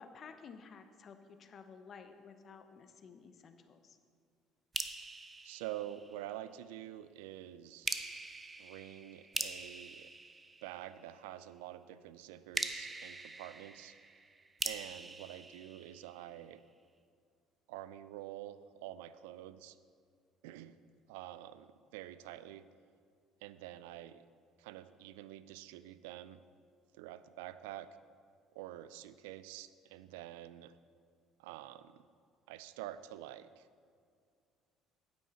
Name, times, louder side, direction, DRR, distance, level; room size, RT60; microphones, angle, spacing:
voice 1, 0.0-4.0, left 5 dB, 50° left, 8 dB, 0.8 m, -53 dB
sound 1, 4.7-6.5 7.9-11.2 12.5-16.5, right 3 dB, 25° right, 0.7 m, -42 dB
voice 2, 5.4-7.9 8.6-10.1 10.6-14.0 14.6-16.6 17.7-19.8 20.4-20.8 21.1-22.7 23.4-24.2 24.6-26.4 26.9-27.9 28.5-30.8 31.4-32.1 32.5-33.7, right 13 dB, 80° right, 14 dB, 0.3 m, -47 dB
9.2 x 9.0 x 4.2 m, 2.3 s
hypercardioid pair, 60°, 0 cm